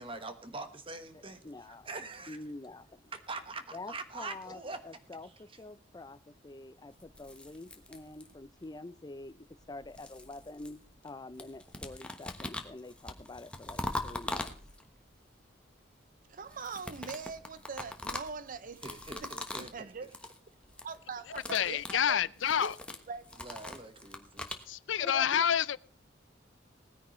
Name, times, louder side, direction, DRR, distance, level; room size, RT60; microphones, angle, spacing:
voice 1, 0.0-1.4 1.9-2.4 3.1-4.8 18.8-19.9 23.4-24.6, right 3 dB, 30° right, 1.3 m, -43 dB
voice 2, 1.4-1.8 2.3-3.1 3.7-14.5 25.0-25.5, left 2 dB, 20° left, 0.6 m, -46 dB
sound 1, 7.0-8.6 9.5-11.1 11.4-15.0 16.4-19.8 20.0-20.4 20.6-21.0 21.2-24.7, left 1 dB, 5° left, 1.1 m, -41 dB
voice 3, 16.3-18.8 19.2-19.3 19.6-20.1 20.8-21.8 22.1-22.2 22.6-22.7 23.1-23.4, right 5 dB, 45° right, 0.6 m, -42 dB
voice 4, 21.5-22.8 24.7-25.8, left 9 dB, 70° left, 0.5 m, -28 dB
19.0 x 9.8 x 3.2 m
head